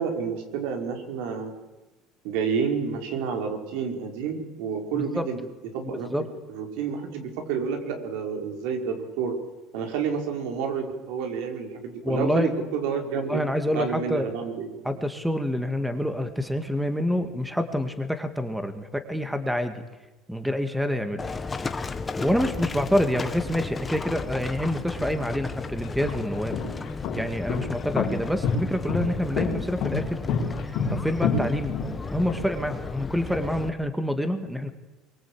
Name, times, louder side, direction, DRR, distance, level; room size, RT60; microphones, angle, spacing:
voice 1, 0.0-1.5 2.2-5.4 5.7-6.1 6.5-9.3 9.7-13.4 13.7-15.0, right 6 dB, 85° right, 3 dB, 5.1 m, -29 dB
voice 2, 4.9-5.3 6.1-6.2 12.0-12.5 13.2-14.3 14.8-19.8 20.3-21.2 21.5-21.7 22.2-26.6 27.1-30.2 30.6-31.7 32.1-34.7, equal, ahead, 8 dB, 1.9 m, -27 dB
Livestock farm animals working animals, 21.2-33.7, left 4 dB, 20° left, 1.4 m, -34 dB
sound 1, 25.1-25.2 25.9-32.4, left 5 dB, 55° left, 4.7 m, -28 dB
24.0 x 23.5 x 8.7 m, 1.1 s
cardioid pair, 135°, 0 cm